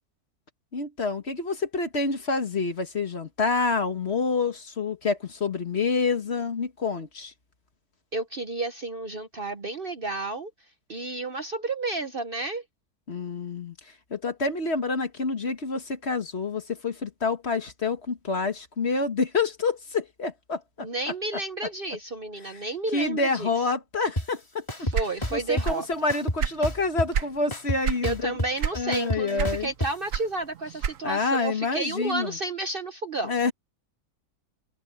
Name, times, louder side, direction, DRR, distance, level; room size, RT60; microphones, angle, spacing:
voice 1, 0.7-7.3 13.1-20.9 22.5-22.6 22.9-24.9 25.3-28.4 28.7-29.7 31.0-32.4 33.2-33.5, left 4 dB, 45° left, 1.8 m, -28 dB
voice 2, 8.1-10.5 10.9-12.6 20.8-23.5 24.8-25.9 28.0-33.3, right 2 dB, 40° right, 1.0 m, -31 dB
sound 1, 24.2-24.3 24.7-25.7 26.1-27.2 27.5-29.9, equal, 15° left, 2.8 m, -29 dB
sound 2, 24.9-25.9 26.2-27.4 27.8-28.1 28.6-29.0 29.4-31.3, right 7 dB, 60° right, 1.2 m, -28 dB
omnidirectional pair, 1.7 m